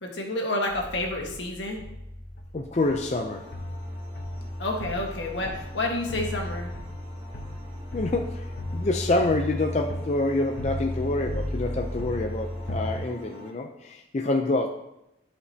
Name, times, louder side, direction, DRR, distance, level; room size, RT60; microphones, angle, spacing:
voice 1, 0.0-1.8 4.6-6.7, left 1 dB, 80° left, 0 dB, 1.5 m, -29 dB
sound 1, 0.7-13.0, left 1 dB, 60° left, 0.8 m, -35 dB
voice 2, 2.5-3.5 7.9-14.7, left 2 dB, 35° left, 3 dB, 0.4 m, -27 dB
sound 2, 2.8-13.5, equal, 45° right, 2.2 m, -48 dB
11.5 x 5.1 x 2.8 m, 0.86 s
head